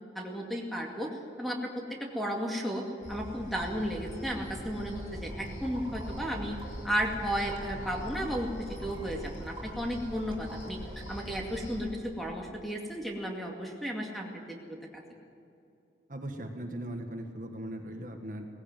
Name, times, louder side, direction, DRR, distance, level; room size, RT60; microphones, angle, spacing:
voice 1, 0.0-6.6 6.8-10.8 11.1-15.0, equal, ahead, 0 dB, 2.3 m, -34 dB
sound 1, 3.0-11.8, equal, 40° left, 3.6 m, -42 dB
sound 2, 5.3-6.8 7.1-11.5, right 2 dB, 25° right, 3.6 m, -51 dB
voice 2, 16.1-18.5, right 1 dB, 45° right, 3 dB, 1.7 m, -39 dB
19.0 x 15.5 x 9.2 m, 2.7 s
head